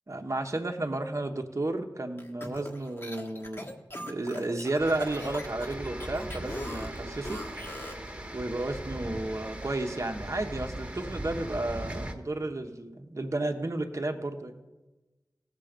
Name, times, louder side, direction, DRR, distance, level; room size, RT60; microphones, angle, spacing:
voice 1, 0.1-3.7 4.1-7.4 8.3-14.6, right 2 dB, 40° right, 4 dB, 1.0 m, -32 dB
sound 1, 2.2-8.1, left 1 dB, 30° left, 1.3 m, -41 dB
sound 2, 4.8-12.1, right 1 dB, 15° right, 1.3 m, -39 dB
17.5 x 6.9 x 5.1 m, 1.1 s
wide cardioid pair, 65°, 8 cm